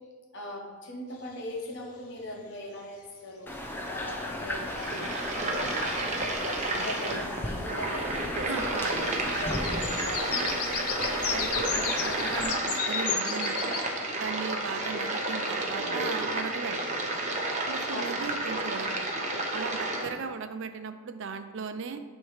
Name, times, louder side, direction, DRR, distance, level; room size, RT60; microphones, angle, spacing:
voice 1, 0.3-3.5 3.9-5.1 5.5-8.5 8.8-9.1 9.4-10.3 17.9-18.1, left 1 dB, 55° left, -1 dB, 1.2 m, -40 dB
sound 1, 1.3-1.4 5.8-5.9 6.3-6.9 9.4-14.3 14.8-14.9, left 7 dB, 85° left, 0.7 m, -33 dB
sound 2, 3.5-12.5, left 1 dB, 10° left, 0.6 m, -36 dB
sound 3, 4.5-20.1, right 2 dB, 35° right, 0.8 m, -31 dB
voice 2, 8.3-9.7 10.3-13.8 14.1-17.2 17.7-19.1 19.5-22.0, right 5 dB, 55° right, 9 dB, 0.4 m, -38 dB
9.6 x 3.2 x 4.8 m, 1.5 s
head